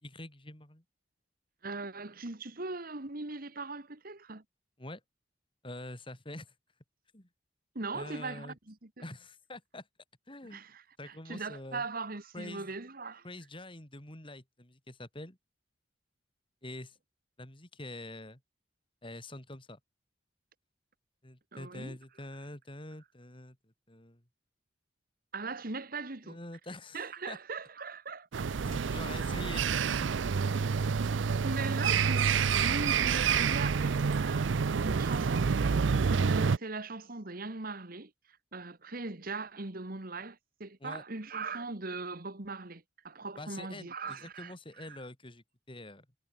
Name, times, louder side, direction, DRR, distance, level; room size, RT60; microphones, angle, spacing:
voice 1, 0.0-0.8 4.8-5.0 5.6-6.5 7.1-7.3 7.9-8.6 9.0-9.9 10.3-10.6 11.0-11.9 12.3-12.7 13.2-15.4 16.6-17.0 17.4-18.4 19.0-19.8 21.2-23.6 23.9-24.2 26.2-27.4 28.6-30.1 40.8-41.0 43.4-46.1, left 1 dB, 30° left, 3.6 m, -45 dB
voice 2, 1.6-4.4 7.8-8.9 10.5-13.3 21.5-22.0 25.3-26.4 26.9-28.5 31.4-34.5 34.8-45.0, right 3 dB, 50° right, 1.8 m, -40 dB
sound 1, 28.3-36.6, right 6 dB, 85° right, 0.5 m, -28 dB
head